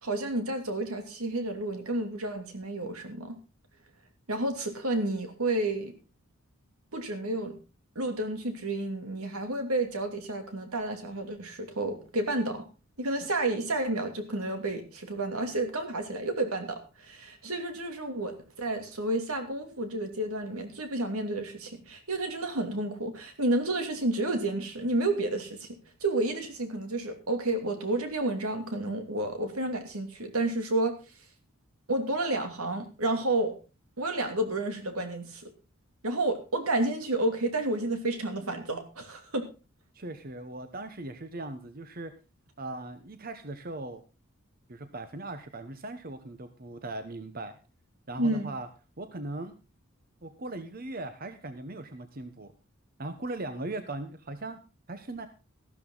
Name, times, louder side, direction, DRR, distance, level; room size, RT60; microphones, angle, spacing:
voice 1, 0.0-3.4 4.3-5.9 6.9-7.6 7.9-12.6 13.0-25.7 26.0-30.9 31.9-33.5 34.0-35.5 36.0-39.5 48.2-48.5, right 2 dB, 85° right, 6 dB, 2.9 m, -30 dB
voice 2, 39.9-42.1 42.6-44.0 44.7-47.6 48.1-48.7 49.0-49.6 50.2-52.5 53.0-54.6 54.9-55.3, right 2 dB, 40° right, 9 dB, 1.0 m, -39 dB
14.0 x 12.5 x 3.9 m, 0.31 s
head